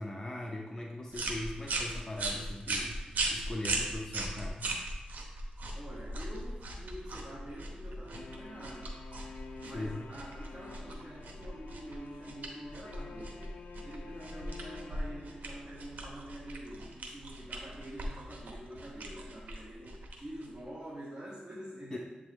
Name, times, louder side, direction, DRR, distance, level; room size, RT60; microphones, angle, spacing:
voice 1, 0.0-4.7 9.6-10.0 21.9-22.0, left 1 dB, 20° left, -1 dB, 0.6 m, -40 dB
sound 1, 1.1-20.7, right 2 dB, 75° right, 0.9 m, -39 dB
voice 2, 5.7-9.0 9.6-13.6 13.8-22.0, right 1 dB, 25° right, -7 dB, 1.3 m, -46 dB
sound 2, 8.1-15.9, left 4 dB, 65° left, 0.5 m, -50 dB
7.7 x 3.5 x 3.5 m, 1.2 s
cardioid pair, 80°, 3 cm